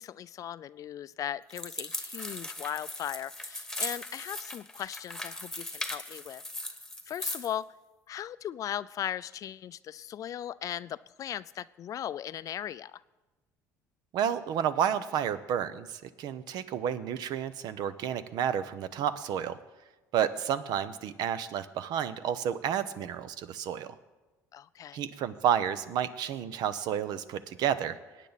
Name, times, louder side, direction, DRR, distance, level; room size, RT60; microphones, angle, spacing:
voice 1, 0.0-6.4 7.1-7.7 8.1-13.0 24.5-25.0, left 10 dB, 50° left, 18 dB, 0.4 m, -38 dB
sound 1, 1.5-7.5, left 1 dB, 5° left, 1.3 m, -38 dB
voice 2, 14.1-19.6 20.1-24.0 24.9-28.0, right 9 dB, 65° right, 13 dB, 0.8 m, -31 dB
22.0 x 9.0 x 4.1 m, 1.2 s
supercardioid pair, 80°, 8 cm